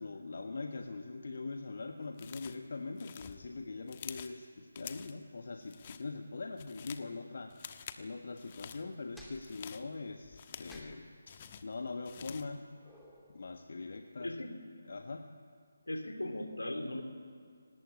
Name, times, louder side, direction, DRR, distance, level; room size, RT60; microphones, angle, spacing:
voice 1, 0.0-7.5 8.0-12.6 13.3-14.3 14.9-15.2, left 3 dB, 50° left, 5 dB, 1.5 m, -42 dB
sound 1, 2.2-2.7 3.0-4.4 4.7-5.2 5.6-6.0 6.4-7.1 7.5-8.0 8.4-8.8 9.3-10.9 11.3-12.5, left 8 dB, 25° left, 1.2 m, -48 dB
sound 2, 9.1-13.6, left 1 dB, ahead, 2.8 m, -59 dB
voice 2, 14.2-14.6 15.9-17.0, left 1 dB, 70° left, 6 dB, 3.4 m, -38 dB
27.0 x 19.0 x 8.7 m, 2.2 s
figure-of-eight pair, 150°, 0 cm